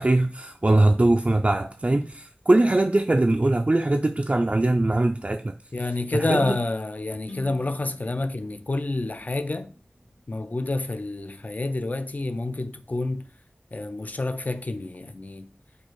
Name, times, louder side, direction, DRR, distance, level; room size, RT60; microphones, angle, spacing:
voice 1, 0.0-5.5 6.1-6.6, right 2 dB, 40° right, 0.3 m, -21 dB
voice 2, 5.7-9.7 10.3-13.2 13.7-15.5, left 2 dB, 45° left, 0.4 m, -28 dB
sound 1, 7.3-11.1, left 2 dB, 70° left, 1.6 m, -48 dB
4.4 x 2.5 x 4.5 m
wide cardioid pair, 40°, 4 cm